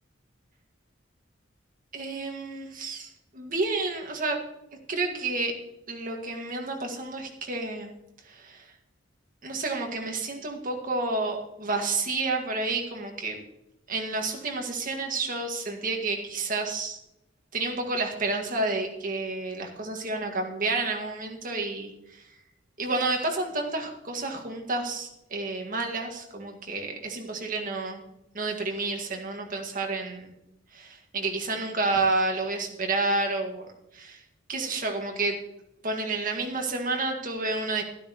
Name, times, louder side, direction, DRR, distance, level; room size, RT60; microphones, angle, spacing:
voice 1, 1.9-4.4 4.9-5.5 5.9-7.9 8.2-8.7 9.4-13.4 13.9-17.0 17.5-22.3 22.8-28.0 28.3-30.3 30.7-33.7 33.9-34.2 34.5-35.4 35.8-37.8, right 3 dB, 45° right, 2 dB, 1.8 m, -30 dB
12.5 x 12.5 x 3.0 m, 0.86 s
head